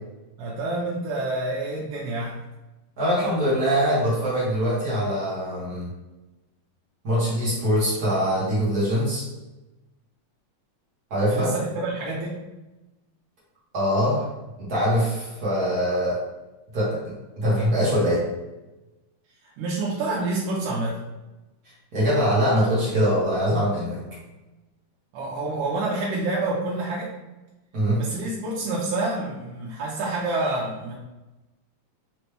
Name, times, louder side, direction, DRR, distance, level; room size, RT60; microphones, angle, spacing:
voice 1, 0.4-2.4 11.3-12.4 19.4-21.0 25.1-27.1 28.0-30.9, right 2 dB, 85° right, -4 dB, 2.1 m, -28 dB
voice 2, 3.0-5.9 7.0-9.2 11.1-11.5 13.7-14.3 14.6-16.2 16.7-18.2 21.9-24.0 27.7-28.0, equal, 50° right, -7 dB, 1.1 m, -23 dB
5.0 x 3.0 x 3.3 m, 1.1 s
omnidirectional pair, 3.6 m